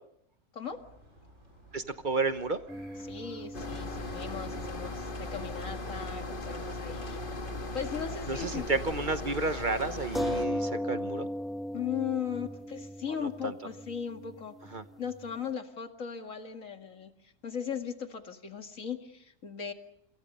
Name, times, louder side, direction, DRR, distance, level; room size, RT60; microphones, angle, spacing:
sound 1, 0.7-10.3, right 1 dB, 75° right, 7.9 m, -57 dB
voice 1, 1.7-2.6 8.3-11.3 13.4-13.5 14.7-14.8, right 3 dB, 40° right, 11 dB, 1.1 m, -31 dB
sound 2, 2.7-6.6 6.8-6.9 10.1-15.4, equal, ahead, 1.1 m, -38 dB
voice 2, 3.0-7.2 7.7-8.7 11.7-19.7, left 7 dB, 85° left, 6 dB, 2.4 m, -38 dB
sound 3, 3.5-10.5, left 2 dB, 40° left, 1.9 m, -38 dB
28.5 x 27.0 x 5.5 m, 0.74 s
omnidirectional pair, 1.3 m